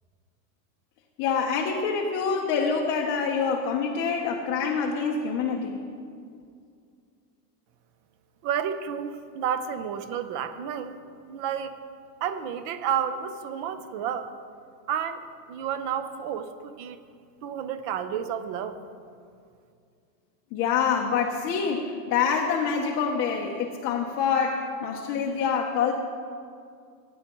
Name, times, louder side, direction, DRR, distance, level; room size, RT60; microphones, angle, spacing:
voice 1, 1.2-5.8 20.5-25.9, left 6 dB, 25° left, 0 dB, 0.6 m, -26 dB
voice 2, 8.4-11.0 11.3-11.8 12.2-14.3 14.9-17.0 17.4-18.8, right 8 dB, 35° right, 11 dB, 0.4 m, -31 dB
16.5 x 9.2 x 3.0 m, 2.3 s
supercardioid pair, 160°, 50 cm